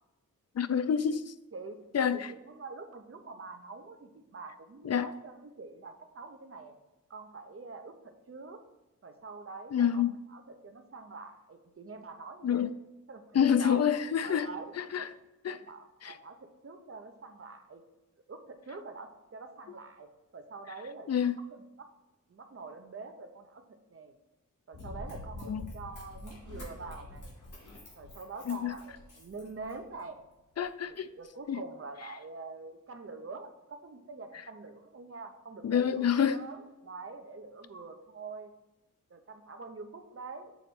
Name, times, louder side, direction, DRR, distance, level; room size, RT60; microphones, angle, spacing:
voice 1, 0.6-1.3 1.9-2.3 4.8-5.1 9.7-10.1 12.4-12.7 13.3-14.5 14.9-15.0 15.4-15.6 16.0-16.2 21.1-21.4 25.5-25.6 28.5-28.7 30.6-31.1 31.5-31.6 35.6-36.4, left 8 dB, 55° left, 0.4 m, -27 dB
voice 2, 1.5-6.7 7.1-7.9 8.3-8.6 9.0-12.6 13.1-13.2 13.6-13.8 14.2-14.7 15.0-15.1 15.5-17.8 18.3-21.9 22.3-23.6 23.9-24.2 24.7-27.3 27.9-30.2 30.9-38.5 39.1-40.5, right 3 dB, 45° right, 0.8 m, -45 dB
Run, 24.7-30.0 30.6-30.7, left 1 dB, 70° left, 2.8 m, -46 dB
7.2 x 4.1 x 6.0 m
wide cardioid pair, 135°, 32 cm